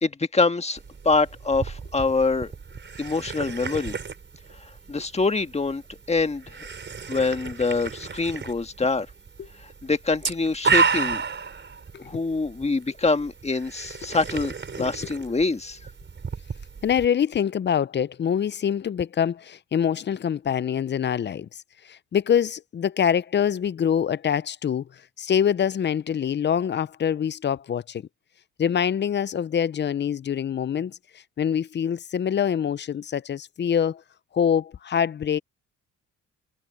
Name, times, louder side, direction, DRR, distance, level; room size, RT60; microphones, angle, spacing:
voice 1, 0.0-2.5 3.0-3.9 4.9-6.6 7.1-9.1 9.6-11.2 12.0-15.9, left 3 dB, 20° left, 1.6 m, -25 dB
sound 1, 0.8-17.1, right 5 dB, 40° right, 4.6 m, -32 dB
voice 2, 16.8-21.6 21.9-24.9 25.2-28.1 28.6-31.0 31.4-34.0 34.3-35.4, left 8 dB, 35° left, 0.6 m, -25 dB
cardioid pair, 90°, 30 cm